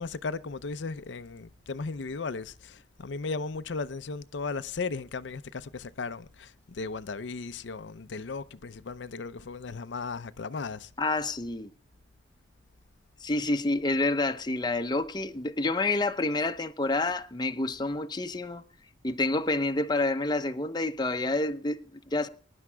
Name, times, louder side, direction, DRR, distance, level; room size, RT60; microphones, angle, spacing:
voice 1, 0.0-11.2, left 4 dB, 85° left, 0.6 m, -36 dB
voice 2, 11.0-11.7 13.2-18.6 19.0-22.3, left 2 dB, 25° left, 0.8 m, -28 dB
24.0 x 11.0 x 2.3 m
head